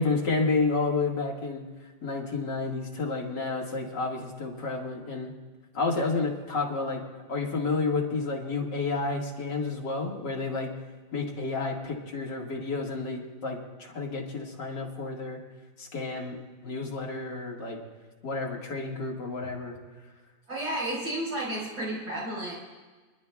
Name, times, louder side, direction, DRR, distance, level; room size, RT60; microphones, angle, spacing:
voice 1, 0.0-1.7 2.0-5.3 5.7-7.0 7.3-10.7 11.1-15.4 15.8-16.4 16.6-17.8 18.2-19.8, left 3 dB, 85° left, -2 dB, 2.7 m, -30 dB
voice 2, 20.5-22.5, right 1 dB, 60° right, -4 dB, 4.9 m, -32 dB
28.0 x 11.5 x 2.3 m, 1.3 s
omnidirectional pair, 1.8 m